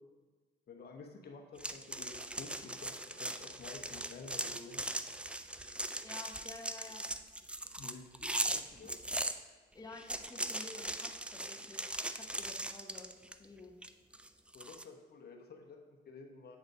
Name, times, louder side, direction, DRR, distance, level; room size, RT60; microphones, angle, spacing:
voice 1, 0.7-4.8 7.8-9.0 14.5-16.6, left 4 dB, 55° left, 3 dB, 0.9 m, -51 dB
sound 1, 1.6-9.4 9.9-13.4 13.8-14.8, right 1 dB, 5° right, 0.3 m, -39 dB
voice 2, 6.0-7.0 9.7-13.1 13.4-13.7, left 3 dB, 20° left, 2 dB, 0.9 m, -51 dB
8.0 x 4.0 x 5.3 m, 1.3 s
cardioid pair, 90°, 20 cm